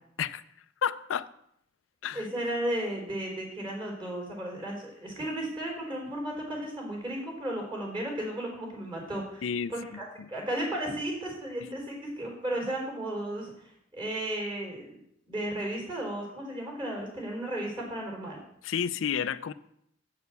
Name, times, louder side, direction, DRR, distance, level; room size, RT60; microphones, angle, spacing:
voice 1, 0.8-1.3 2.0-2.3 9.4-9.7 10.2-10.3 18.6-19.5, left 7 dB, 80° left, 14 dB, 0.4 m, -30 dB
voice 2, 2.1-15.0 15.3-18.4, right 1 dB, 25° right, -1 dB, 3.8 m, -34 dB
8.2 x 6.7 x 6.8 m, 0.74 s
head